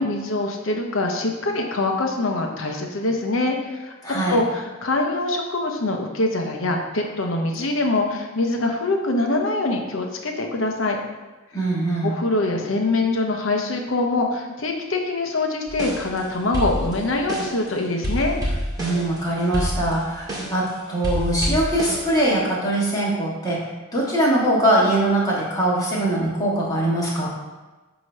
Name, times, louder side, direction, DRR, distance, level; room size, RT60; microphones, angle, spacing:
voice 1, 0.0-3.9 4.3-11.0 12.0-18.4, left 2 dB, 70° left, 2 dB, 0.9 m, -24 dB
voice 2, 4.0-4.4 11.5-12.1 18.8-23.6 23.9-27.3, right 1 dB, 20° left, -6 dB, 1.7 m, -22 dB
sound 1, 15.7-16.2 16.5-17.7 18.0-20.7 21.0-22.4, equal, 20° right, 1.9 m, -28 dB
7.9 x 3.0 x 5.5 m, 1.2 s
head